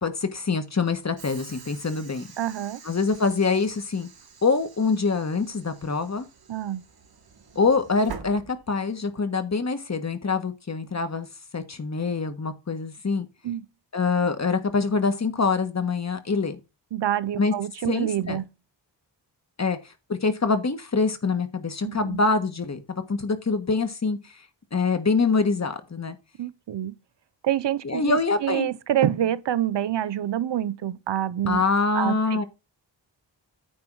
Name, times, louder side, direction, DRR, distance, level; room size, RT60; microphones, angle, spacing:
voice 1, 0.0-2.3 2.8-4.1 4.4-6.3 7.5-11.3 11.5-13.3 13.9-16.6 17.4-17.5 17.9-18.4 19.6-24.4 24.7-26.2 27.8-28.7 31.5-32.4, left 4 dB, 35° left, 1.4 m, -25 dB
Train / Sliding door, 1.2-9.1, right 5 dB, 55° right, 1.5 m, -46 dB
voice 2, 2.4-2.8 6.5-6.8 13.4-13.7 16.9-18.5 21.8-22.2 26.4-26.9 27.4-31.6 31.9-32.4, right 11 dB, 75° right, 0.7 m, -27 dB
9.4 x 3.5 x 6.1 m
wide cardioid pair, 100°, 44 cm